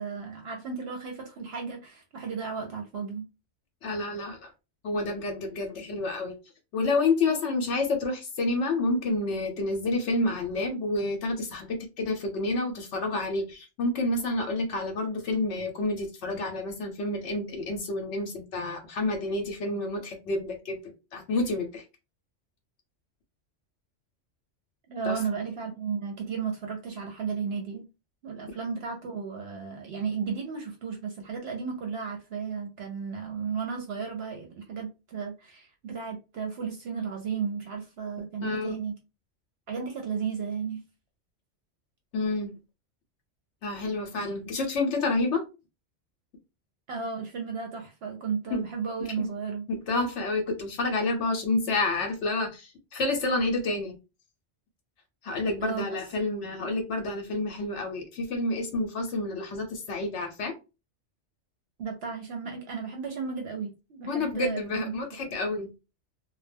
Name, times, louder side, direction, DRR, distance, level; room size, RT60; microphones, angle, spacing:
voice 1, 0.0-3.3 24.9-27.9 28.2-39.0 39.7-40.8 46.9-49.6 55.6-55.8 56.2-56.3 56.6-56.8 61.8-65.0, right 6 dB, 65° right, 0.8 m, -34 dB
voice 2, 3.8-4.5 4.8-6.4 6.7-21.8 25.0-25.2 38.4-38.8 42.1-42.5 43.6-45.4 48.5-48.6 49.2-49.3 49.7-54.0 55.2-60.5 64.1-65.7, left 2 dB, 75° left, 0.9 m, -29 dB
2.2 x 2.1 x 3.3 m
omnidirectional pair, 1.2 m